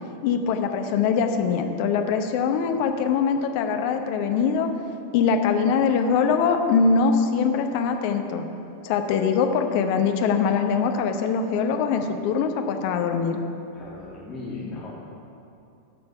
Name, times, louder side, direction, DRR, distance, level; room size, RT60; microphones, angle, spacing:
voice 1, 0.2-4.7 5.1-8.4 8.8-13.4, left 6 dB, 45° left, 6 dB, 0.8 m, -22 dB
voice 2, 13.7-14.9, left 3 dB, 25° left, -7 dB, 1.8 m, -36 dB
13.5 x 5.5 x 5.7 m, 2.6 s
figure-of-eight pair, 90°, 0 cm